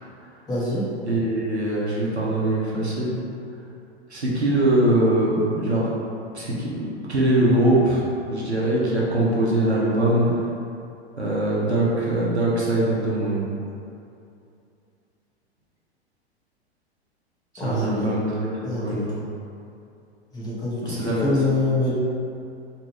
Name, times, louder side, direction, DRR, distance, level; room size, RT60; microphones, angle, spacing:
voice 1, 0.5-0.9 17.6-18.1 18.6-19.0 20.3-21.9, left 2 dB, 10° left, -8 dB, 0.6 m, -25 dB
voice 2, 1.1-3.1 4.1-5.9 6.3-8.0 8.3-10.3 11.2-13.5 17.6-18.4 18.6-19.1 20.8-21.3, right 1 dB, 90° right, -6 dB, 0.8 m, -22 dB
2.9 x 2.4 x 3.0 m, 2.6 s
figure-of-eight pair, 100°, 32 cm